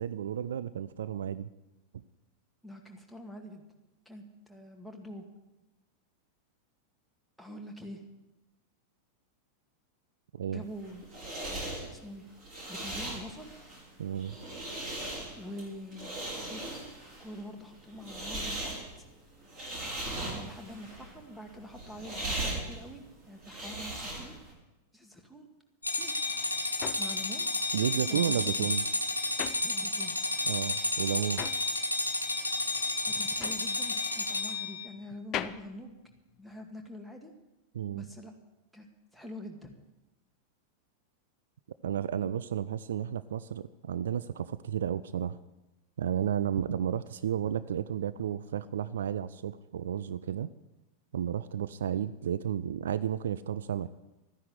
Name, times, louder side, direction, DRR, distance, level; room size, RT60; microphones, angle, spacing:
voice 1, 0.0-1.5 10.3-10.6 14.0-14.4 27.7-28.8 30.5-31.5 37.7-38.1 41.8-45.4 46.0-50.5 51.1-53.9, right 9 dB, 65° right, 15 dB, 0.4 m, -32 dB
voice 2, 2.6-3.6 4.1-5.3 7.4-8.0 10.5-11.1 11.9-12.3 12.7-13.5 15.4-16.1 16.4-16.9 17.2-18.8 20.2-24.4 24.9-25.5 26.0-26.1 27.0-27.5 28.1-28.7 29.6-30.2 33.0-36.0 36.4-37.3 37.9-38.3 38.7-38.9 39.1-39.7, left 1 dB, ahead, 4 dB, 2.0 m, -45 dB
sound 1, 10.7-24.5, right 1 dB, 35° right, 6.7 m, -39 dB
sound 2, 25.8-34.9, left 2 dB, 80° left, 1.2 m, -31 dB
sound 3, 26.0-30.3 30.6-36.9, left 11 dB, 35° left, 0.6 m, -42 dB
13.0 x 10.0 x 7.9 m, 0.99 s
figure-of-eight pair, 90°, 0 cm